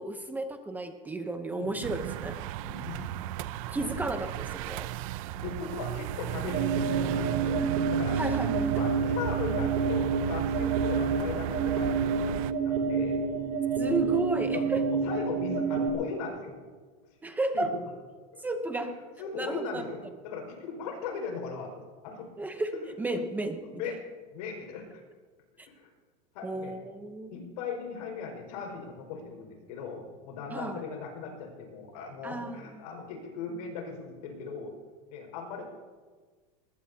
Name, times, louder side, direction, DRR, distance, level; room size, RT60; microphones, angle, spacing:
voice 1, 0.0-2.4 3.7-4.9 8.2-8.9 13.8-14.8 17.2-17.7 18.4-18.9 19.4-19.8 22.4-22.7 23.0-23.9 25.6-25.7 26.4-27.3 30.5-30.8 32.2-32.7, right 2 dB, 10° right, 6 dB, 0.8 m, -33 dB
voice 2, 1.5-1.8 2.6-3.2 3.8-4.1 5.3-8.2 8.7-13.2 14.5-14.6 14.9-16.5 17.5-17.7 18.3-18.4 19.2-21.7 22.0-22.3 23.7-24.0 24.3-25.0 25.7-25.9 26.3-26.7 27.3-34.7 35.1-35.7, left 5 dB, 75° left, 1 dB, 5.6 m, -38 dB
sound 1, 1.8-12.5, right 13 dB, 60° right, 0.6 m, -34 dB
sound 2, 6.5-15.9, right 5 dB, 40° right, 3.1 m, -29 dB
20.5 x 20.5 x 2.9 m, 1.5 s
supercardioid pair, 155°, 20 cm